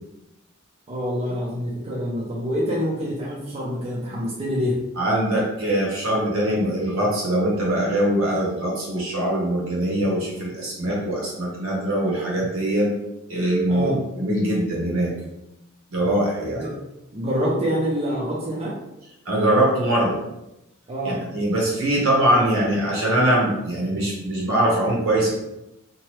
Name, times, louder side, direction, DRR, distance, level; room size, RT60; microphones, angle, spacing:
voice 1, 0.9-4.8 13.7-14.0 16.5-16.6 17.1-18.8 20.9-21.2, equal, 30° right, -6 dB, 0.5 m, -26 dB
voice 2, 5.0-12.9 13.3-15.1 15.9-16.6 19.2-20.2 21.0-25.3, right 1 dB, 65° right, -3 dB, 1.0 m, -22 dB
2.8 x 2.2 x 3.1 m, 0.90 s
head